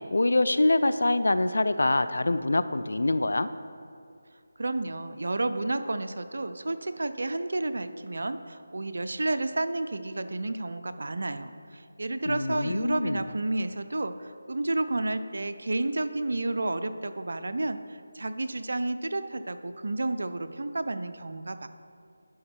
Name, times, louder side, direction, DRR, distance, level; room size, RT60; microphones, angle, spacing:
voice 1, 0.0-3.5 12.3-13.2, left 2 dB, 70° left, 13 dB, 0.4 m, -25 dB
voice 2, 4.6-21.7, right 2 dB, 65° right, 10 dB, 0.5 m, -31 dB
11.0 x 5.4 x 4.4 m, 2.3 s
figure-of-eight pair, 165°, 0 cm